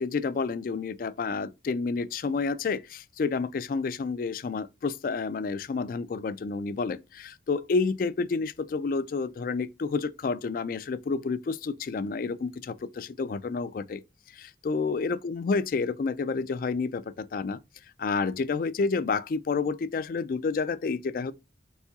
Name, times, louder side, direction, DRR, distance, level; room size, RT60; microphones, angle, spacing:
voice 1, 0.0-2.8 3.2-4.6 5.0-7.0 7.5-8.5 8.7-9.7 9.9-11.4 11.9-12.5 13.2-13.7 14.7-16.9 17.3-17.6 18.0-19.2 19.5-21.3, left 4 dB, 50° left, 0.3 m, -29 dB
4.4 x 4.1 x 2.3 m
head